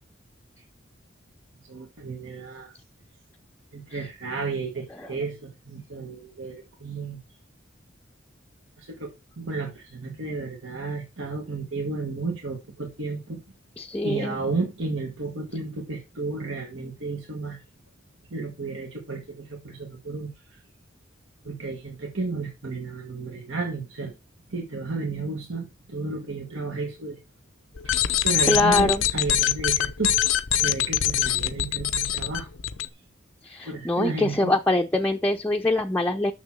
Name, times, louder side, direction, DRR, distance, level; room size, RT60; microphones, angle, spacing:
voice 1, 1.7-2.7 3.7-7.2 8.8-9.1 9.4-13.4 14.0-17.6 18.3-20.6 21.4-24.1 24.5-27.2 27.8-30.1 30.6-32.5 33.6-34.5, right 3 dB, 75° right, 1.6 m, -32 dB
voice 2, 13.8-14.4 28.5-29.0 33.5-36.3, left 2 dB, 10° left, 0.6 m, -23 dB
sound 1, 27.8-32.9, left 11 dB, 80° left, 0.7 m, -24 dB
6.7 x 6.3 x 6.0 m
head